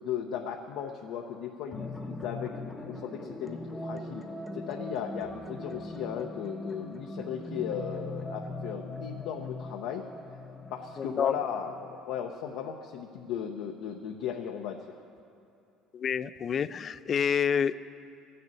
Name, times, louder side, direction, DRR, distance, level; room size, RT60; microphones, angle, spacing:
voice 1, 0.0-4.2 4.5-10.4 10.7-15.0, left 8 dB, 75° left, 2 dB, 0.7 m, -36 dB
sound 1, 1.7-12.3, left 2 dB, 15° left, 0.9 m, -41 dB
voice 2, 11.0-11.4 15.9-17.8, left 7 dB, 40° left, 16 dB, 0.3 m, -28 dB
13.0 x 6.8 x 8.9 m, 2.7 s
cardioid pair, 110°, 0 cm